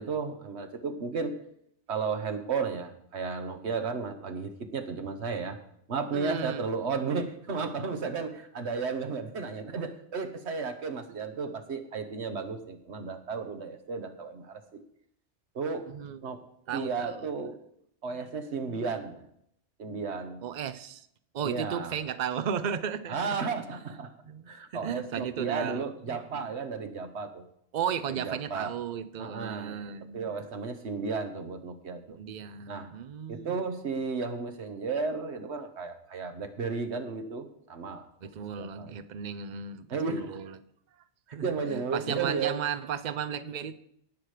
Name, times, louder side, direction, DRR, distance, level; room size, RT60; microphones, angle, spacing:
voice 1, 0.0-1.4 1.9-5.6 5.9-14.8 15.5-15.8 16.2-16.4 16.7-17.6 18.0-19.3 19.8-20.4 21.4-21.9 23.1-24.1 24.5-27.4 28.1-28.7 29.2-29.8 30.1-32.2 32.7-32.9 33.3-38.1 38.6-38.9 39.9-40.3 41.4-42.6, right 5 dB, 70° right, 7 dB, 1.5 m, -33 dB
voice 2, 6.1-6.7 15.9-16.2 16.7-17.3 18.2-18.3 20.4-21.1 21.3-23.2 23.9-24.0 24.2-26.5 27.7-30.5 32.2-33.6 38.2-40.6 41.3-43.7, right 8 dB, 45° right, 13 dB, 0.7 m, -35 dB
18.0 x 6.1 x 5.0 m, 0.72 s
omnidirectional pair, 1.2 m